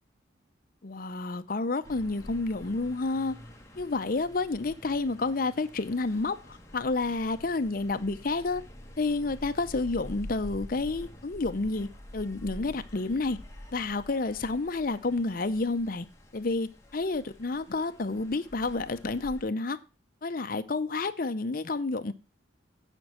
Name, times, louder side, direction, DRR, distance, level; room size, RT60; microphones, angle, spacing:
voice 1, 0.8-3.4 3.8-8.6 9.0-13.4 13.7-16.1 16.3-19.8 20.2-22.1, left 3 dB, 50° left, 0.7 m, -30 dB
sound 1, 1.8-19.4, left 1 dB, 15° left, 1.4 m, -47 dB
9.0 x 5.3 x 6.1 m
head